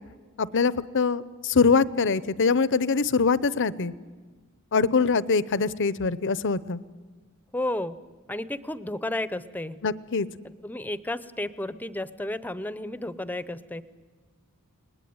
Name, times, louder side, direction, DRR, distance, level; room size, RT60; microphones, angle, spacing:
voice 1, 0.4-3.9 4.7-6.8 9.8-10.3, left 4 dB, 60° left, 18 dB, 0.8 m, -23 dB
voice 2, 7.5-8.0 8.3-9.8 10.6-13.8, left 1 dB, 10° left, 15 dB, 0.8 m, -32 dB
29.0 x 20.0 x 9.5 m, 1.4 s
head